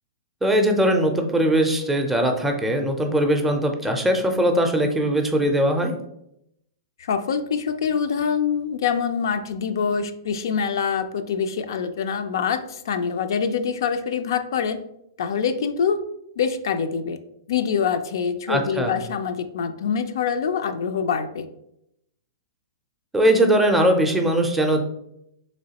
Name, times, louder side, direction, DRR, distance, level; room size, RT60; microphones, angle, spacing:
voice 1, 0.4-5.9 18.5-18.9 23.1-24.8, right 1 dB, 5° right, 3 dB, 0.4 m, -20 dB
voice 2, 7.0-14.8 15.2-16.0 16.4-17.2 17.5-21.5, left 6 dB, 75° left, 9 dB, 0.3 m, -25 dB
3.4 x 3.0 x 2.8 m, 0.78 s
hypercardioid pair, 145°, 2 cm